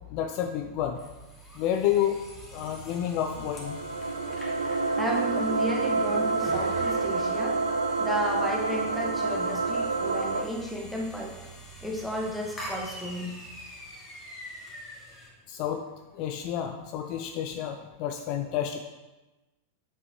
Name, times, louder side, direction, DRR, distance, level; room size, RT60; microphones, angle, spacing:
voice 1, 0.1-1.0 1.5-2.2 2.5-3.8 15.5-15.9 16.1-18.8, left 10 dB, 45° left, 6 dB, 0.4 m, -29 dB
sound 1, 0.9-15.3, right 1 dB, 15° left, 1.8 m, -45 dB
sound 2, 3.0-10.4, right 3 dB, 80° right, 0.4 m, -28 dB
voice 2, 5.0-7.6 8.0-11.4 11.8-13.4, equal, ahead, -2 dB, 1.3 m, -33 dB
8.0 x 5.3 x 3.0 m, 1.1 s
figure-of-eight pair, 90°, 0 cm